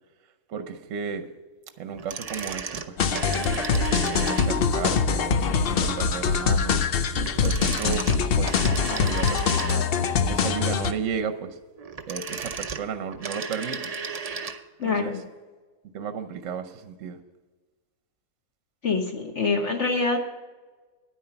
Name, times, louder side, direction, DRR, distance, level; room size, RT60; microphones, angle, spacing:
voice 1, 0.5-1.3 1.8-6.8 7.4-8.0 8.3-9.9 10.3-11.6 12.1-13.9 14.8-15.1 15.9-17.2, right 6 dB, 60° right, 9 dB, 1.0 m, -34 dB
sound 1, 1.9-4.8 7.2-10.1 11.8-14.6 14.9-15.0, right 5 dB, 80° right, 0.3 m, -34 dB
sound 2, 3.0-10.9, left 6 dB, 65° left, 0.5 m, -24 dB
voice 2, 14.8-15.2 18.8-20.2, left 4 dB, 50° left, 2 dB, 1.3 m, -25 dB
10.0 x 9.2 x 5.8 m, 1.3 s
omnidirectional pair, 1.7 m